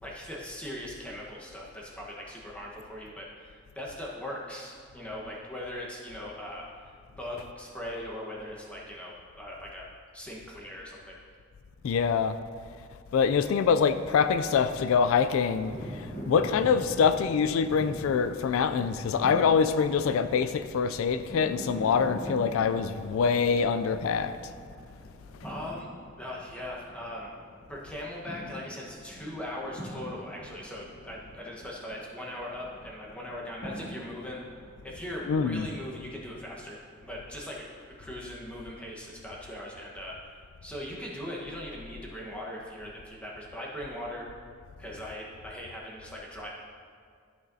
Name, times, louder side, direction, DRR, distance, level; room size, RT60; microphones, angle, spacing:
voice 1, 0.0-6.7 7.2-9.9 10.1-11.1 25.4-25.9 26.2-27.3 27.7-34.4 34.8-40.3 40.6-44.3 44.8-46.5, left 1 dB, 5° left, -4 dB, 1.1 m, -40 dB
voice 2, 11.8-12.3 13.1-15.7 16.3-24.3 35.3-35.7, left 6 dB, 80° left, 11 dB, 0.3 m, -25 dB
sound 1, 15.6-35.4, equal, 50° left, 1.7 m, -44 dB
13.0 x 6.2 x 2.7 m, 2.1 s
head